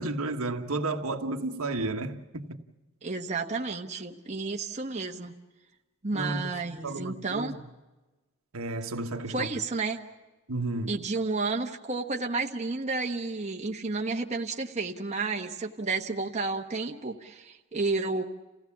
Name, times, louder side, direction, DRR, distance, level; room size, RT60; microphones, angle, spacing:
voice 1, 0.0-2.6 6.1-7.6 8.5-9.5 10.5-10.9, right 2 dB, 70° right, 1.4 m, -32 dB
voice 2, 3.0-5.3 6.0-7.5 9.3-10.0 10.9-18.2, right 3 dB, 30° right, 1.2 m, -31 dB
28.5 x 16.5 x 7.2 m
head